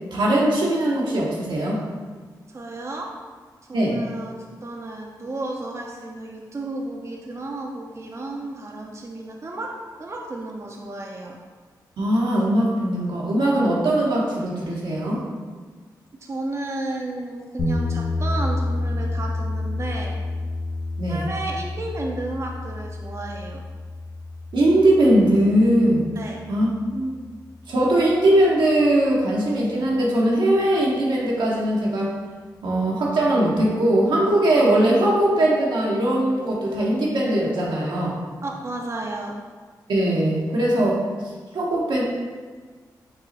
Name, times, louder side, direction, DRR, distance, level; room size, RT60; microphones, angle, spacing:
voice 1, 0.1-1.8 3.7-4.0 12.0-15.2 21.0-21.2 24.5-26.0 26.5-27.1 27.7-32.1 32.6-38.2 39.9-42.0, right 1 dB, 80° right, -4 dB, 1.0 m, -20 dB
voice 2, 2.5-3.1 3.7-9.7 10.0-11.4 16.1-20.2 21.1-23.6 26.2-26.4 38.4-39.4, right 2 dB, 40° right, 0 dB, 0.5 m, -33 dB
sound 1, 17.6-27.6, left 2 dB, 65° left, 0.9 m, -29 dB
5.4 x 2.0 x 4.0 m, 1.5 s
cardioid pair, 50°, 8 cm